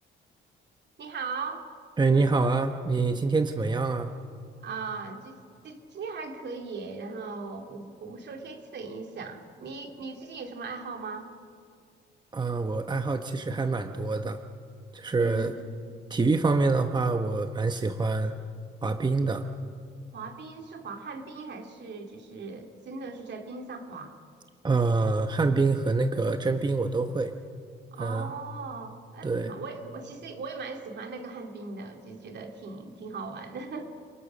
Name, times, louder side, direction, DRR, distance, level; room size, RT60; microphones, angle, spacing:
voice 1, 1.0-1.7 4.6-11.3 15.2-15.6 20.1-24.2 27.9-33.8, right 4 dB, 60° right, 4 dB, 2.6 m, -39 dB
voice 2, 2.0-4.1 12.3-14.4 14.9-15.5 16.1-18.3 18.8-19.5 24.6-27.3 28.0-28.3 29.2-29.5, right 3 dB, 20° right, 7 dB, 1.0 m, -26 dB
28.5 x 19.5 x 6.2 m, 2.2 s
cardioid pair, 90°, 20 cm